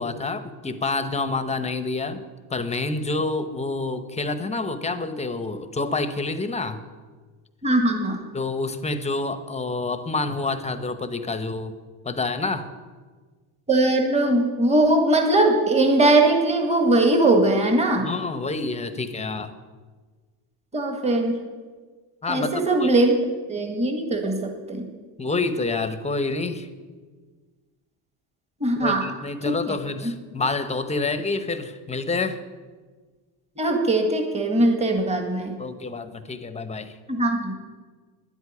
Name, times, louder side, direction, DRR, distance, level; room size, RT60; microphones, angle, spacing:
voice 1, 0.0-2.2 2.5-6.8 8.3-11.7 12.0-12.7 18.0-19.5 22.2-22.9 25.2-26.7 28.8-32.4 35.6-36.9, left 3 dB, 15° left, 11 dB, 0.9 m, -28 dB
voice 2, 7.6-8.2 13.7-18.1 20.7-21.4 22.3-23.2 23.5-24.9 28.6-29.1 29.4-29.7 30.0-30.1 33.6-35.6 37.1-37.5, right 2 dB, 15° right, 4 dB, 1.8 m, -20 dB
10.5 x 8.2 x 9.6 m, 1.4 s
cardioid pair, 120°, 43 cm